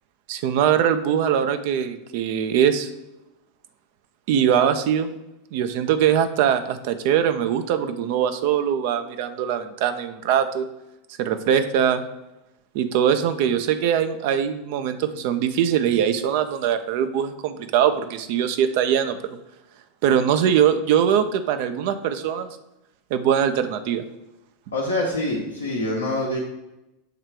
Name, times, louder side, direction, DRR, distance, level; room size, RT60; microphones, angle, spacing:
voice 1, 0.3-2.9 4.3-5.1 5.5-10.7 11.2-12.0 12.7-19.4 20.0-22.5 23.1-24.0, right 9 dB, 55° right, 9 dB, 0.4 m, -22 dB
voice 2, 24.7-26.4, left 1 dB, 80° left, -4 dB, 0.9 m, -25 dB
6.7 x 3.2 x 4.6 m, 0.94 s
figure-of-eight pair, 85°, 0 cm